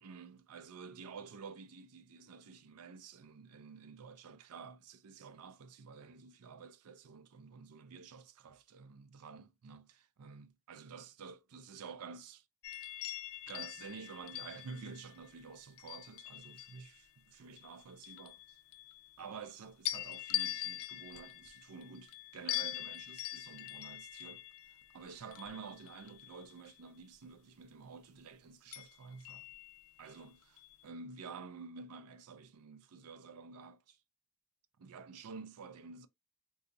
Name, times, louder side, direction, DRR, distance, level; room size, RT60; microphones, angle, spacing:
voice 1, 0.0-12.5 13.5-18.6 19.2-24.4 24.9-29.5 30.0-30.4 30.8-34.0 34.8-36.1, right 5 dB, 75° right, 0.4 m, -50 dB
sound 1, 12.6-17.0 17.6-19.5 19.8-26.8 28.7-30.1 30.6-30.8, left 14 dB, 65° left, 0.5 m, -43 dB
3.8 x 2.3 x 2.5 m
head